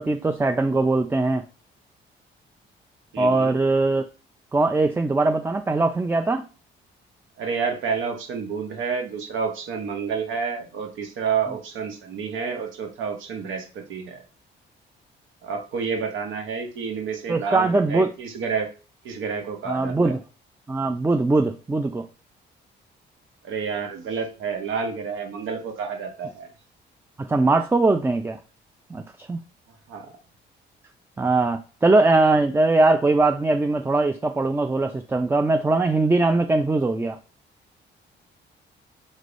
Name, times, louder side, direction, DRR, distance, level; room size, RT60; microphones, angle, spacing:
voice 1, 0.0-1.4 3.2-4.1 4.5-6.4 17.3-18.1 19.7-20.2 20.7-22.1 27.2-28.4 28.9-29.4 31.2-37.2, right 2 dB, 10° right, 7 dB, 0.4 m, -21 dB
voice 2, 3.1-3.6 7.4-14.2 15.4-18.7 19.0-20.1 23.4-26.5 29.9-30.1, right 6 dB, 80° right, 5 dB, 0.9 m, -29 dB
5.3 x 3.2 x 2.5 m, 0.35 s
cardioid pair, 90°, 20 cm